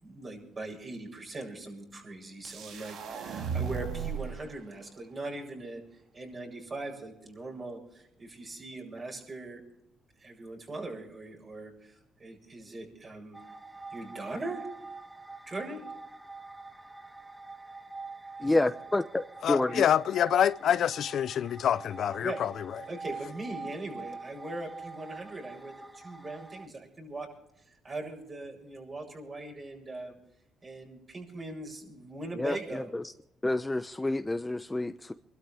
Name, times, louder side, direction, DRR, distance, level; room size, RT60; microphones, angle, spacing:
voice 1, 0.0-9.6 10.2-13.4 13.9-14.7 15.5-15.8 18.4-18.6 22.2-22.4 22.9-27.3 27.7-30.2 30.6-32.9, right 2 dB, 35° right, 7.8 m, -40 dB
sound 1, 2.4-4.4, right 7 dB, 75° right, 1.9 m, -35 dB
sound 2, 13.3-26.7, right 3 dB, 10° right, 1.3 m, -45 dB
voice 2, 18.4-19.2 19.5-19.9 32.4-33.0 33.4-35.1, left 2 dB, 15° left, 0.8 m, -29 dB
voice 3, 19.4-22.8, left 9 dB, 70° left, 0.5 m, -27 dB
27.0 x 12.5 x 3.5 m
cardioid pair, 90°, 0 cm